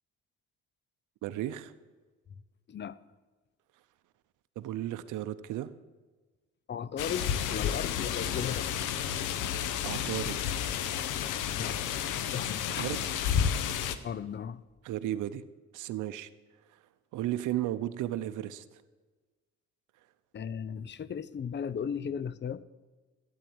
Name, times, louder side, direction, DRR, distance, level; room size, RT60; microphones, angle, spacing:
voice 1, 1.2-1.7 4.6-5.7 9.8-10.4 12.7-13.2 14.8-15.4 15.7-16.3 16.7-16.8 17.1-18.8, right 13 dB, 85° right, 11 dB, 0.7 m, -34 dB
voice 2, 2.7-3.0 6.7-8.9 11.6-11.8 12.3-12.8 14.0-14.6 20.3-22.6, left 7 dB, 35° left, 18 dB, 0.6 m, -36 dB
sound 1, 7.0-14.0, left 9 dB, 90° left, 0.9 m, -31 dB
12.5 x 8.8 x 8.7 m, 1.3 s
cardioid pair, 90°, 30 cm